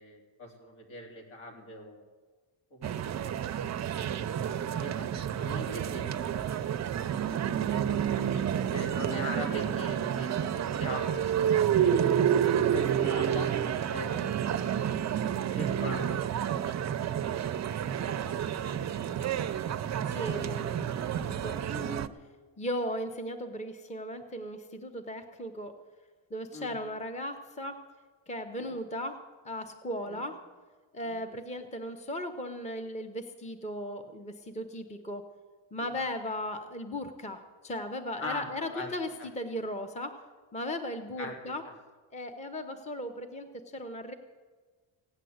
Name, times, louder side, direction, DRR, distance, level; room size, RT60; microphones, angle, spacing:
voice 1, 0.0-2.0 2.7-3.0 3.2-3.4 4.5-6.1 6.5-7.4 8.1-8.5 8.7-11.1 11.7-12.1 12.7-13.6 13.9-14.5 15.5-16.1 16.6-16.8 18.5-18.8 26.5-26.7 28.6-28.8 30.1-30.2 31.1-31.2 35.8-35.9 38.2-38.9 41.2-41.3 41.7-41.8, left 1 dB, 75° left, 1 dB, 3.5 m, -41 dB
sound 1, 2.8-22.1, right 9 dB, 35° right, 0.4 m, -29 dB
voice 2, 20.1-20.9 21.2-22.1 22.6-25.7 26.3-27.8 28.3-29.2 29.4-30.4 30.9-35.2 35.7-40.2 40.5-41.6 42.1-44.1, equal, 15° left, 7 dB, 0.8 m, -37 dB
16.0 x 9.9 x 7.9 m, 1.4 s
wide cardioid pair, 175°, 48 cm